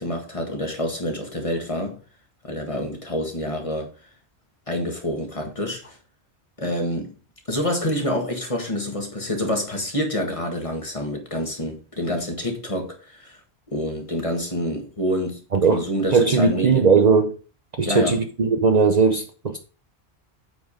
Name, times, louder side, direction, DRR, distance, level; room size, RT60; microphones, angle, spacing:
voice 1, 0.0-2.0 2.4-4.1 4.7-6.0 6.6-7.1 7.5-13.4 13.7-15.4 15.7-16.9 17.8-18.2, equal, 30° left, 1.7 m, -27 dB
voice 2, 15.5-17.4 17.8-19.6, right 4 dB, 45° right, 0.7 m, -19 dB
8.0 x 4.6 x 4.9 m
omnidirectional pair, 1.1 m